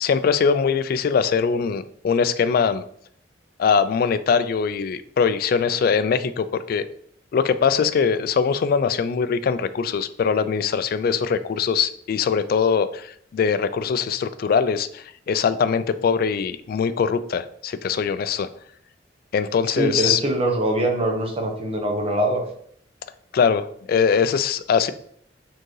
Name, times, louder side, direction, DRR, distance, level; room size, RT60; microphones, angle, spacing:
voice 1, 0.0-2.8 3.6-6.8 7.3-18.5 19.3-20.2 23.3-24.9, left 6 dB, 55° left, 12 dB, 0.3 m, -22 dB
voice 2, 19.8-22.4, right 1 dB, 35° right, 2 dB, 0.9 m, -23 dB
4.5 x 3.7 x 3.1 m, 0.64 s
head